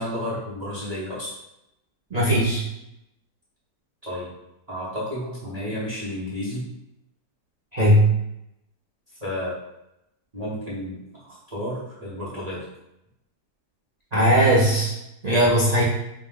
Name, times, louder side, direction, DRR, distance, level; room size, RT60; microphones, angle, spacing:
voice 1, 0.0-1.4 4.0-4.3 4.7-6.7 9.2-9.6 10.3-12.7, left 1 dB, 30° right, -8 dB, 0.7 m, -31 dB
voice 2, 2.1-2.6 7.7-8.1 14.1-14.9 15.2-15.8, equal, 85° right, -7 dB, 0.3 m, -18 dB
5.0 x 2.1 x 3.6 m, 0.86 s
omnidirectional pair, 1.8 m